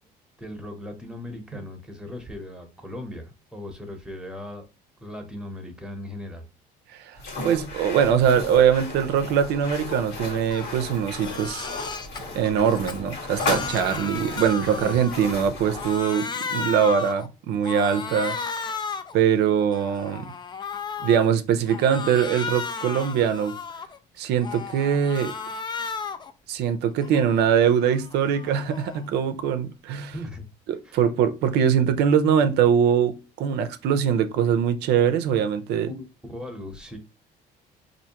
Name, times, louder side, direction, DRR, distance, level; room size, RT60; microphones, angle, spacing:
voice 1, 0.4-4.7 5.0-6.4 14.7-14.9 30.1-30.4 30.8-31.0 35.8-37.0, left 1 dB, 5° right, 0.9 m, -38 dB
sound 1, 7.2-16.0, left 2 dB, 70° left, 1.5 m, -34 dB
voice 2, 7.4-11.7 12.3-18.7 19.1-20.3 21.0-23.5 24.2-25.3 26.5-30.1 30.7-35.9, right 8 dB, 80° right, 0.5 m, -22 dB
Crying sobbing, 10.5-10.7 11.1-12.2 12.7-15.5 15.7-17.3 17.6-19.2 19.6-21.3 21.7-24.0 24.4-26.3 26.7-29.1, left 5 dB, 25° left, 0.4 m, -34 dB
4.3 x 2.6 x 2.9 m
cardioid pair, 110°, 17 cm